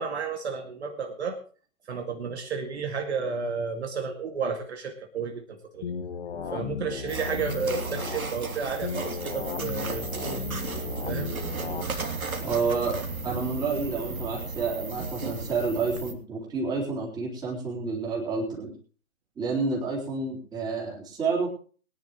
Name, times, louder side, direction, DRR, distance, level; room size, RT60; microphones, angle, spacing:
voice 1, 0.0-1.4 1.9-5.9 6.5-10.4 11.0-11.4, right 5 dB, 45° right, 4 dB, 2.3 m, -32 dB
sound 1, 5.8-8.2 8.8-11.8, left 6 dB, 50° left, 1.7 m, -35 dB
sound 2, 7.1-16.1, right 3 dB, 70° right, 2.9 m, -34 dB
voice 2, 12.4-18.7 19.4-21.5, right 4 dB, 10° right, -3 dB, 3.7 m, -29 dB
22.5 x 10.5 x 3.1 m, 0.40 s
figure-of-eight pair, 145°, 44 cm